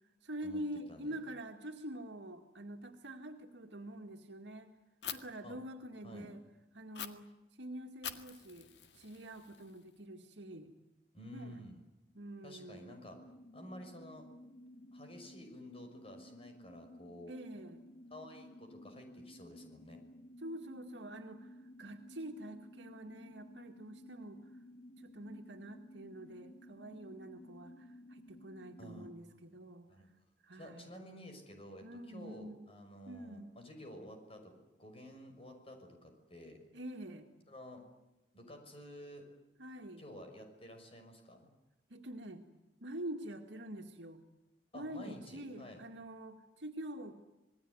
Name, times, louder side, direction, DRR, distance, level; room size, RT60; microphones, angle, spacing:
voice 1, 0.2-4.7 5.1-6.4 6.7-7.3 7.6-8.7 8.9-10.7 11.3-11.7 12.1-13.0 17.3-17.8 20.4-24.5 25.0-29.9 30.4-31.0 31.8-32.6 33.1-33.5 36.7-37.3 39.6-40.0 41.9-42.4 42.8-44.2 44.7-47.1, right 1 dB, 75° right, 3 dB, 2.2 m, -46 dB
Fire, 5.0-5.2 6.9-7.1 8.0-10.0, left 8 dB, 70° left, 2.0 m, -45 dB
voice 2, 11.1-11.9 12.4-13.2 13.5-14.3 14.9-17.3 18.1-20.0 28.8-29.1 29.9-30.1 30.6-34.5 34.8-36.6 37.5-37.8 38.3-39.2 40.0-41.5 44.7-45.8, equal, 35° left, 5 dB, 6.1 m, -51 dB
sound 1, 13.1-29.1, equal, 55° left, 1.8 m, -55 dB
27.0 x 20.0 x 9.7 m, 1.0 s
head